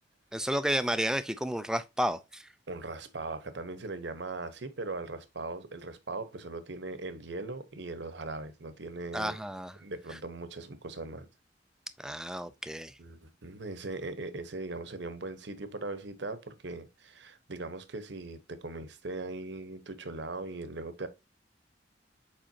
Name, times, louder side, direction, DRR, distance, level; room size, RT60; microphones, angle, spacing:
voice 1, 0.3-2.5 9.1-9.7 12.0-12.9, equal, 5° right, 0.4 m, -31 dB
voice 2, 2.7-9.4 9.8-11.3 13.0-21.1, right 2 dB, 65° right, 0.9 m, -39 dB
7.5 x 4.9 x 2.6 m
head